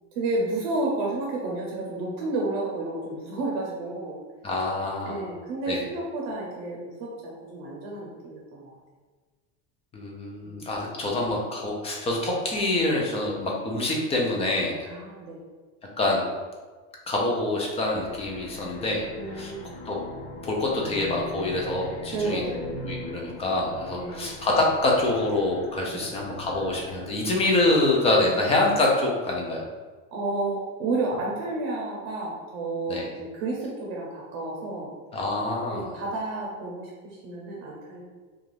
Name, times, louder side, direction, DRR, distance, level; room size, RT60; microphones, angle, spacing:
voice 1, 0.2-4.2 5.0-8.7 10.4-10.7 14.8-15.4 19.1-19.7 22.1-22.8 23.9-24.4 25.8-26.0 28.2-28.4 30.1-34.9 35.7-38.0, right 2 dB, 60° right, -3 dB, 0.7 m, -31 dB
voice 2, 4.4-5.2 5.7-5.8 9.9-14.7 16.0-16.3 17.1-19.5 19.9-20.0 20.4-22.4 22.8-29.6 32.9-33.1 35.1-35.9, left 2 dB, 15° left, -2 dB, 0.4 m, -26 dB
sound 1, 17.8-28.3, left 2 dB, 85° left, 0.6 m, -41 dB
2.4 x 2.3 x 3.1 m, 1.4 s
supercardioid pair, 140°, 37 cm